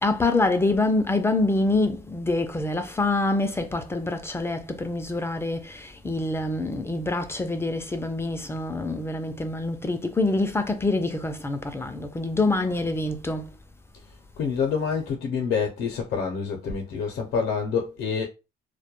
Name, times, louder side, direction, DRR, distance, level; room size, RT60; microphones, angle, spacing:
voice 1, 0.0-13.5, left 2 dB, 15° left, 0.3 m, -26 dB
voice 2, 14.4-18.3, left 6 dB, 80° left, 0.6 m, -27 dB
2.2 x 2.1 x 2.8 m
cardioid pair, 110°, 17 cm